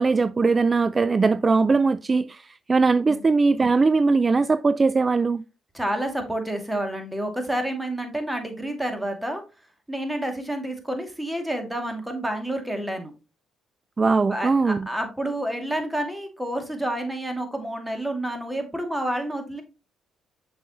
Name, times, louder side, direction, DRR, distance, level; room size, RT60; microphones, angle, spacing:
voice 1, 0.0-5.4 14.0-14.9, right 4 dB, 35° right, 0.3 m, -20 dB
voice 2, 5.7-9.4 9.9-13.1 14.3-19.6, right 1 dB, 5° right, 2.4 m, -29 dB
6.9 x 6.2 x 2.9 m
supercardioid pair, 55°, 0 cm